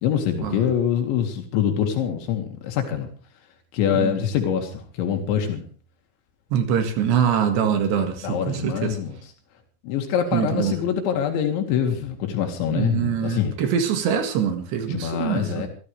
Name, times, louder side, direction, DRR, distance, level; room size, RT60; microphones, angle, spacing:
voice 1, 0.0-3.1 3.7-5.6 8.2-9.2 9.8-13.6 14.9-15.7, left 8 dB, 85° left, 4.2 m, -24 dB
voice 2, 3.9-4.2 6.5-9.0 10.3-10.8 12.7-15.7, right 8 dB, 70° right, 4.0 m, -24 dB
24.5 x 13.5 x 3.4 m
omnidirectional pair, 5.2 m